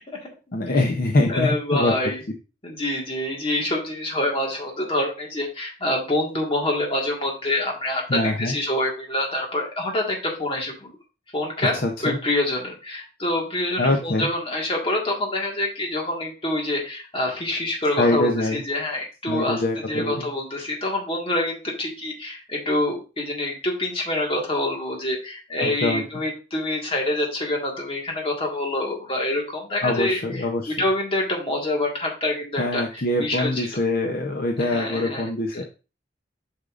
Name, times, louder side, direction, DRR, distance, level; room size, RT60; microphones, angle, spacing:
voice 1, 0.5-1.9 8.1-8.5 11.6-12.2 13.8-14.3 18.0-18.6 19.3-20.3 25.6-26.0 29.8-30.7 32.6-35.6, left 2 dB, 50° left, 2 dB, 0.7 m, -24 dB
voice 2, 1.3-2.2 2.6-10.9 11.3-11.7 12.0-19.6 19.9-30.4 30.8-33.7 34.6-35.2 35.6-35.7, left 1 dB, 30° left, 0 dB, 1.7 m, -26 dB
8.2 x 5.5 x 2.5 m, 0.32 s
head